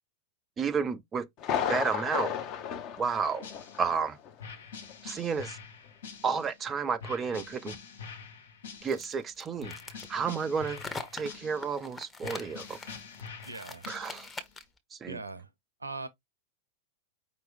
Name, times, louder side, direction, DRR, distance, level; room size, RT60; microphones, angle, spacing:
voice 1, 0.6-1.3 1.7-2.3 3.0-3.5 3.8-4.2 5.0-5.6 6.2-7.8 8.8-9.7 10.1-10.8 11.1-12.8 13.9-14.3 14.9-15.2, right 6 dB, 20° right, 0.4 m, -31 dB
Thunder, 1.4-4.0 4.3-4.4 4.9-5.0, left 8 dB, 40° left, 0.9 m, -33 dB
sound 1, 3.1-4.0 4.4-6.6 7.0-9.2 9.6-11.8 12.2-14.4, left 6 dB, 65° left, 1.0 m, -46 dB
sound 2, 8.9-14.8, left 3 dB, 15° left, 0.9 m, -43 dB
voice 2, 13.4-13.9 15.1-15.5 15.8-16.1, right 3 dB, 80° right, 0.6 m, -40 dB
5.1 x 2.9 x 3.4 m
figure-of-eight pair, 90°, 0 cm